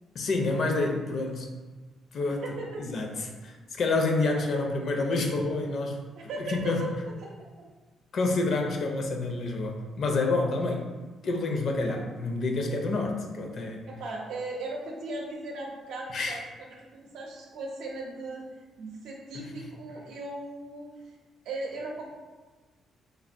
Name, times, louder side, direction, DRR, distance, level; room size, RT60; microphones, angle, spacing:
voice 1, 0.1-1.5 2.1-2.4 2.8-6.0 6.5-6.9 8.1-10.9 11.2-13.8 16.1-16.4 19.3-19.4, left 3 dB, 60° left, 2 dB, 0.5 m, -28 dB
voice 2, 2.4-2.8 3.3-3.4 6.2-6.9 7.2-7.3 13.9-18.5 18.8-20.9 21.4-22.1, right 2 dB, 85° right, -1 dB, 0.6 m, -37 dB
3.2 x 2.3 x 2.5 m, 1.3 s
cardioid pair, 90°, 0 cm